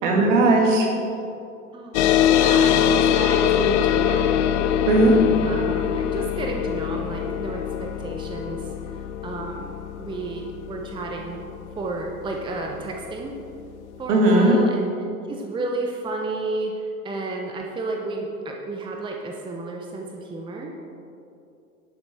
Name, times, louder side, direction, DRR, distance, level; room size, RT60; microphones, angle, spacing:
voice 1, 0.0-0.9 4.9-5.2 14.1-14.6, right 2 dB, 60° right, 0 dB, 2.4 m, -17 dB
sound 1, 1.9-12.9, left 9 dB, 50° left, 0.7 m, -23 dB
voice 2, 2.3-4.3 5.4-8.7 9.2-11.4 11.8-13.3 14.0-14.9 15.3-20.7, right 2 dB, 10° right, 1 dB, 0.9 m, -32 dB
11.5 x 8.5 x 4.4 m, 2.7 s
figure-of-eight pair, 90°, 43 cm